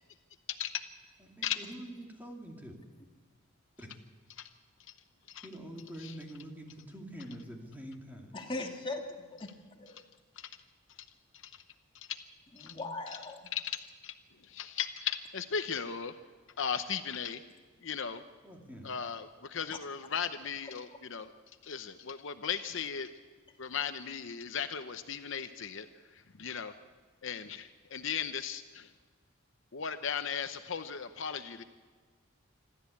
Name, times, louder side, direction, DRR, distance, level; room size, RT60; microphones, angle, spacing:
voice 1, 0.5-0.9 1.4-1.6 4.3-4.5 5.3-5.5 6.0-6.1 10.4-10.5 11.3-11.6 11.9-12.1 12.6-12.7 13.1-13.2 13.5-14.1 14.4-16.1 16.6-17.4 17.8-18.2 18.8-21.3 21.6-23.1 23.6-26.7 27.2-28.9 29.7-31.6, left 7 dB, 60° left, 9 dB, 0.8 m, -37 dB
voice 2, 1.4-2.8 3.8-3.9 5.4-8.3 18.4-18.9, right 1 dB, 10° right, 1 dB, 2.6 m, -45 dB
voice 3, 8.3-9.5 9.8-10.0 12.6-13.5, left 2 dB, 25° left, 2 dB, 1.9 m, -39 dB
26.5 x 13.0 x 8.5 m, 1.4 s
head